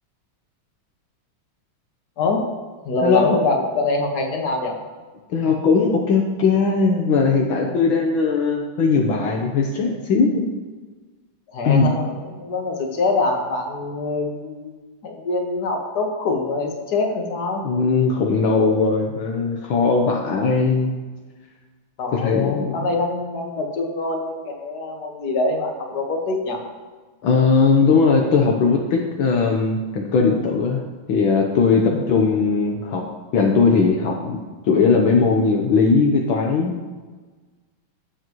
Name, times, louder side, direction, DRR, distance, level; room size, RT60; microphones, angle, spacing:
voice 1, 2.2-2.5 2.9-4.8 11.5-17.6 22.0-26.6 31.9-32.1, left 3 dB, 50° left, 1 dB, 2.0 m, -24 dB
voice 2, 3.0-3.4 5.3-10.4 11.6-11.9 17.6-20.9 22.1-22.9 27.2-30.8 31.1-33.0 33.3-36.7, left 4 dB, 75° left, 0 dB, 1.8 m, -19 dB
19.5 x 7.6 x 3.1 m, 1.3 s
omnidirectional pair, 2.3 m